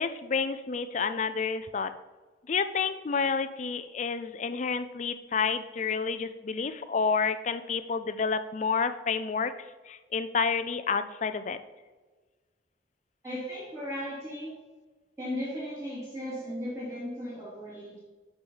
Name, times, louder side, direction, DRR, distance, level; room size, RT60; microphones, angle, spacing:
voice 1, 0.0-1.9 2.5-9.5 9.9-11.6, left 5 dB, 40° left, 11 dB, 0.4 m, -29 dB
voice 2, 13.2-14.5 15.2-18.0, equal, 15° right, -11 dB, 2.8 m, -36 dB
6.3 x 6.2 x 5.4 m, 1.3 s
head